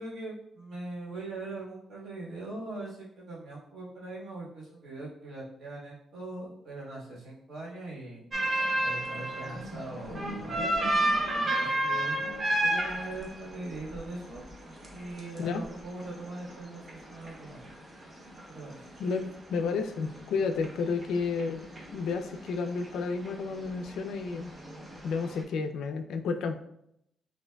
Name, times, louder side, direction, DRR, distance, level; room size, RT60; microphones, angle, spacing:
voice 1, 0.0-8.2 8.8-12.2 12.6-14.4 14.9-17.7 18.5-18.9, right 2 dB, 70° right, -5 dB, 1.4 m, -41 dB
sound 1, 8.3-25.4, right 1 dB, 30° right, 0.8 m, -33 dB
voice 2, 19.0-21.6 21.9-24.5 25.0-26.6, left 4 dB, 85° left, 7 dB, 0.3 m, -31 dB
5.6 x 2.5 x 2.2 m, 0.78 s
cardioid pair, 105°, 0 cm